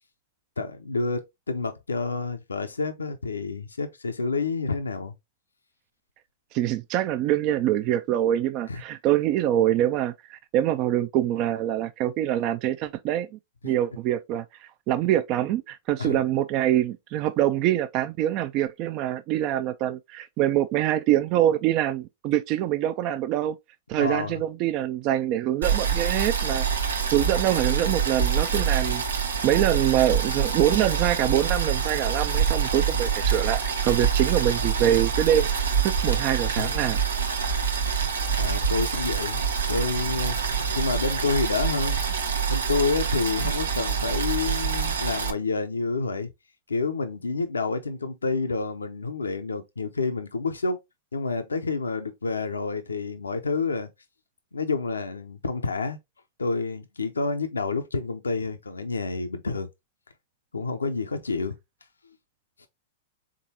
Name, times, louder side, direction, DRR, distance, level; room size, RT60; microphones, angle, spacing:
voice 1, 0.6-5.1 8.7-8.8 16.0-16.2 23.9-24.4 36.6-36.7 38.0-40.4 40.8-42.0 42.5-46.3 46.7-50.8 51.1-53.9 54.5-56.0 56.4-59.7 60.5-61.6 62.6-62.7, left 4 dB, 90° left, 0.6 m, -29 dB
voice 2, 6.5-13.3 13.6-23.6 23.9-26.6 27.1-29.0 29.4-37.0, right 12 dB, 45° right, 0.4 m, -25 dB
Boiling, 25.6-45.3, right 6 dB, 85° right, 0.8 m, -26 dB
3.9 x 3.7 x 2.8 m
hypercardioid pair, 110°, 0 cm